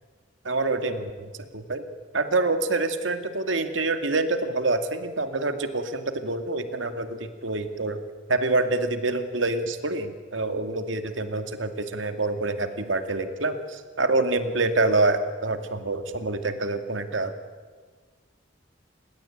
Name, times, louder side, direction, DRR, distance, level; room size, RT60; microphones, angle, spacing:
voice 1, 0.4-1.8 2.1-8.0 8.3-17.3, right 2 dB, 80° right, 8 dB, 2.3 m, -26 dB
28.0 x 21.5 x 8.9 m, 1.5 s
head